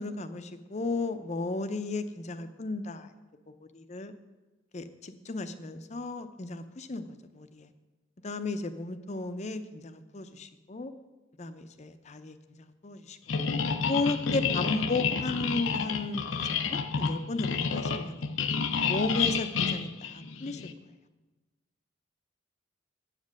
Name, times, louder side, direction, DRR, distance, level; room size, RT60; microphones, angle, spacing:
voice 1, 0.0-3.1 3.5-4.1 4.7-7.7 8.2-10.9 11.4-13.2 13.9-18.2 18.8-20.6, left 2 dB, 35° left, 10 dB, 0.6 m, -34 dB
sound 1, 13.3-20.7, left 5 dB, 80° left, 0.6 m, -30 dB
8.1 x 7.5 x 6.4 m, 1.2 s
head